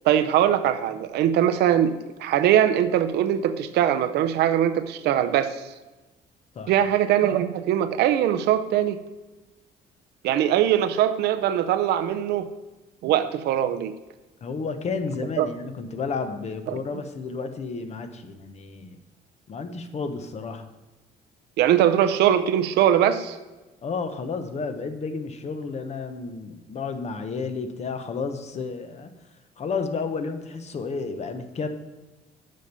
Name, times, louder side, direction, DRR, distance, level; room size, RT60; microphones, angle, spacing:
voice 1, 0.0-5.6 6.7-9.0 10.2-12.5 13.0-13.9 15.4-15.5 16.7-16.8 21.6-23.4, right 10 dB, 75° right, 9 dB, 0.7 m, -21 dB
voice 2, 14.4-19.0 19.5-20.7 23.8-29.1 29.6-31.7, left 4 dB, 40° left, 8 dB, 0.9 m, -31 dB
7.5 x 5.3 x 6.9 m, 1.1 s
cardioid pair, 110°, 17 cm